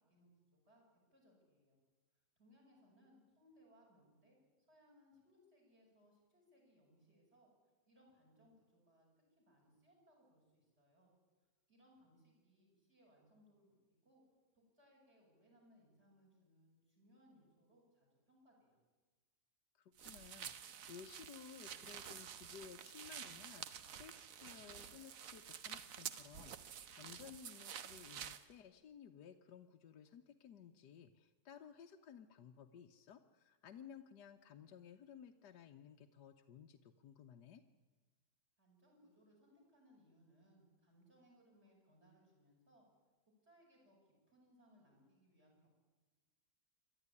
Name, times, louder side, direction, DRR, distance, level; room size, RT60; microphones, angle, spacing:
voice 1, 0.1-0.8 1.1-1.8 2.4-4.4 4.7-7.5 7.9-9.1 9.4-11.1 11.7-13.7 14.0-14.2 14.5-18.8 38.6-42.8 43.4-45.7, equal, 35° right, 0 dB, 7.7 m, -69 dB
voice 2, 19.7-37.6, left 8 dB, 75° left, 3 dB, 1.5 m, -57 dB
sound 1, 20.0-28.4, right 8 dB, 55° right, 1.2 m, -50 dB
27.5 x 12.0 x 9.7 m, 1.3 s
omnidirectional pair, 1.8 m